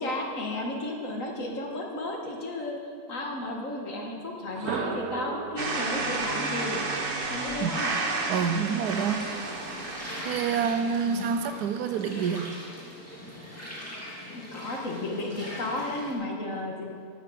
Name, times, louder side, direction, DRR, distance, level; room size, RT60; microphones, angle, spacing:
voice 1, 0.0-2.8 3.1-8.0 9.1-9.5 11.1-11.2 14.3-16.9, left 2 dB, 60° left, 1 dB, 1.9 m, -33 dB
sound 1, 4.5-8.4, right 6 dB, 60° right, 0.8 m, -37 dB
sound 2, 5.6-11.4, right 3 dB, 40° right, 1.2 m, -32 dB
voice 2, 8.3-9.2 10.2-12.5, right 6 dB, 90° right, 9 dB, 1.3 m, -27 dB
sound 3, 8.8-16.1, left 1 dB, 10° left, 2.4 m, -41 dB
12.0 x 6.7 x 7.8 m, 2.5 s
omnidirectional pair, 1.6 m